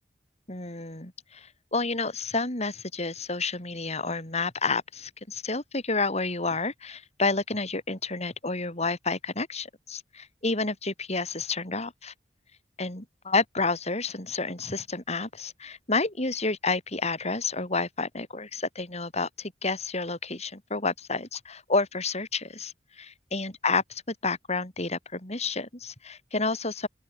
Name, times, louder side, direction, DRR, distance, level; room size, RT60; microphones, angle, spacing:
voice 1, 0.5-12.1 12.8-23.8 24.2-26.9, left 3 dB, 40° left, 6.5 m, -30 dB
open air
head